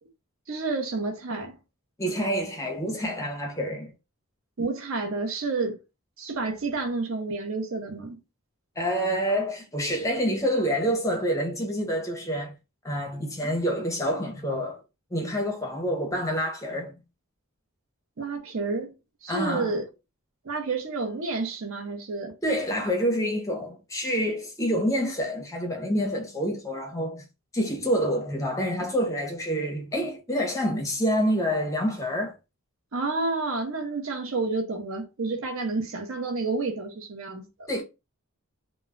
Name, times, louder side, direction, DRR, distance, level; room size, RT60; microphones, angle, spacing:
voice 1, 0.5-1.6 4.6-5.8 6.2-8.2 18.2-18.9 19.2-19.9 20.4-22.4 32.9-37.7, right 3 dB, 60° right, 0.6 m, -30 dB
voice 2, 2.0-3.9 8.8-12.6 12.8-14.8 15.1-16.9 19.3-19.8 22.4-27.3 27.5-32.4 37.7-37.8, equal, 15° left, 0.6 m, -27 dB
2.2 x 2.0 x 3.6 m
head